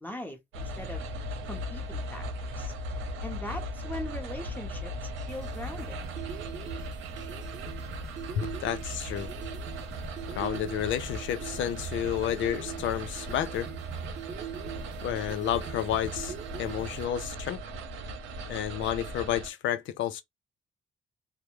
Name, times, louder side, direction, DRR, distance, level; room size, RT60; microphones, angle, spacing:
voice 1, 0.0-1.0 1.4-2.2 2.6-2.7 3.2-4.9 5.3-6.0, left 1 dB, 10° left, 0.9 m, -40 dB
sound 1, 0.5-19.5, right 1 dB, 85° right, 0.7 m, -38 dB
sound 2, 5.0-17.1, right 7 dB, 40° right, 0.7 m, -42 dB
voice 2, 8.3-9.3 10.3-13.7 15.0-17.6 18.5-20.2, left 11 dB, 75° left, 0.5 m, -31 dB
2.3 x 2.0 x 3.0 m
cardioid pair, 90°, 20 cm